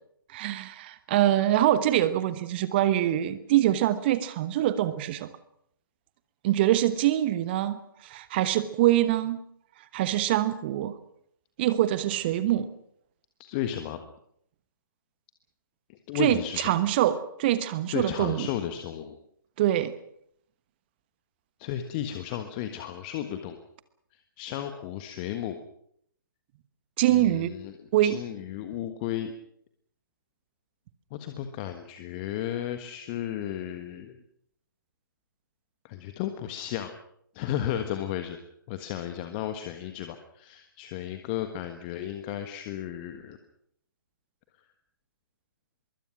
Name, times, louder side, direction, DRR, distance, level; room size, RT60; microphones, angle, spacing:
voice 1, 0.3-5.3 6.4-9.4 9.9-10.9 11.6-12.7 16.1-18.5 19.6-19.9 27.0-27.5 27.9-28.2, right 13 dB, 30° right, 14 dB, 1.1 m, -24 dB
voice 2, 13.4-14.0 15.9-16.7 17.9-19.2 21.6-23.6 24.4-25.6 27.1-27.7 28.0-29.3 31.1-34.2 35.8-36.9 37.3-38.4 38.7-43.4, left 11 dB, 25° left, 8 dB, 1.5 m, -34 dB
24.0 x 23.0 x 6.1 m, 0.69 s
figure-of-eight pair, 130°, 12 cm